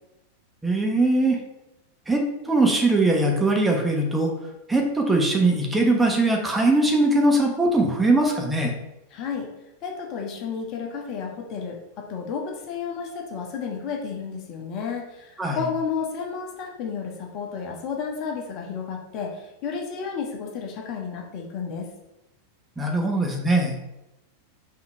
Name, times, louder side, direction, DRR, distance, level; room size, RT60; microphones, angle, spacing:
voice 1, 0.6-1.4 2.1-4.3 4.7-8.7 15.4-15.6 22.8-23.7, right 2 dB, 10° right, 0 dB, 1.0 m, -21 dB
voice 2, 9.1-9.5 9.8-21.9, left 6 dB, 40° left, 1 dB, 1.3 m, -32 dB
5.9 x 3.9 x 4.4 m, 0.93 s
figure-of-eight pair, 90°, 0 cm